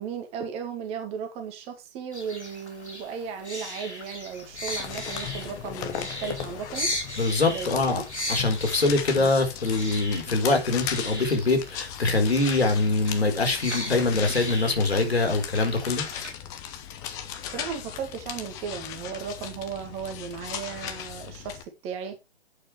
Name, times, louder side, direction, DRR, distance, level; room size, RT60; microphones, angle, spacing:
voice 1, 0.0-6.9 7.5-8.0 9.1-9.3 17.4-22.2, right 7 dB, 20° right, 1.9 m, -36 dB
sound 1, 2.1-16.3, left 1 dB, 90° left, 3.8 m, -37 dB
sound 2, 4.3-21.6, left 9 dB, 10° left, 0.6 m, -37 dB
voice 2, 7.2-8.0 8.3-16.1, left 3 dB, 70° left, 4.3 m, -24 dB
11.0 x 8.5 x 3.3 m
figure-of-eight pair, 130°, 33 cm